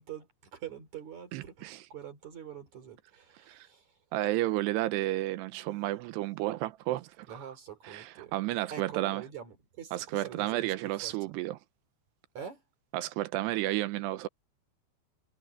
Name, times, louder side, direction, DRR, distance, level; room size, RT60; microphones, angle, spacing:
voice 1, 0.0-4.0 7.3-8.3 8.7-11.4 12.3-12.6, right 9 dB, 45° right, 3.7 m, -45 dB
voice 2, 1.3-1.8 3.5-3.7 4.1-7.3 7.8-9.2 9.9-11.6 12.9-14.3, right 16 dB, 80° right, 2.6 m, -32 dB
omnidirectional pair, 5.3 m